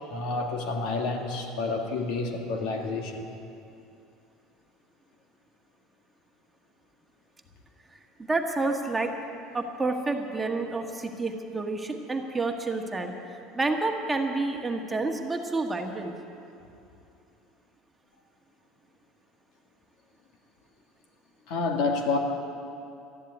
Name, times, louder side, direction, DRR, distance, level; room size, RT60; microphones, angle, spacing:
voice 1, 0.1-3.2 21.5-22.2, left 3 dB, 70° left, 3 dB, 2.0 m, -29 dB
voice 2, 8.3-9.1 9.5-13.1 13.5-16.1, right 3 dB, 15° right, 3 dB, 1.5 m, -29 dB
13.0 x 11.0 x 9.7 m, 2.6 s
supercardioid pair, 110°, 0 cm